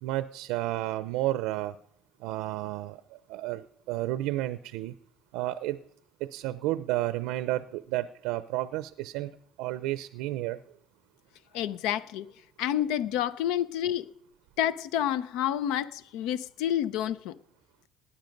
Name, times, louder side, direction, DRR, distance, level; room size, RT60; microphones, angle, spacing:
voice 1, 0.0-1.8 2.2-4.9 5.3-5.8 6.2-10.6, right 16 dB, 85° right, 0.5 m, -32 dB
voice 2, 11.5-12.3 12.6-14.0 14.6-17.4, left 11 dB, 85° left, 0.6 m, -29 dB
18.0 x 10.0 x 5.3 m
cardioid pair, 110°, 0 cm